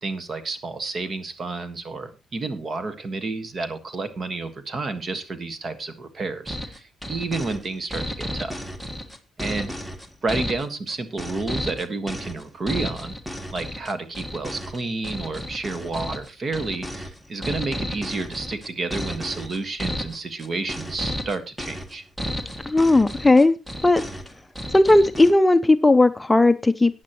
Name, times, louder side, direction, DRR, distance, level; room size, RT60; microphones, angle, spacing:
voice 1, 0.0-8.5 9.4-9.7 10.2-13.2 13.5-22.0, right 3 dB, 40° right, 10 dB, 1.6 m, -30 dB
sound 1, 6.5-25.3, equal, 5° right, 1.6 m, -33 dB
voice 2, 22.7-23.5 23.8-24.0 24.7-27.0, left 2 dB, 15° left, 11 dB, 0.6 m, -16 dB
14.5 x 9.6 x 3.0 m, 0.28 s
cardioid pair, 90°, 0 cm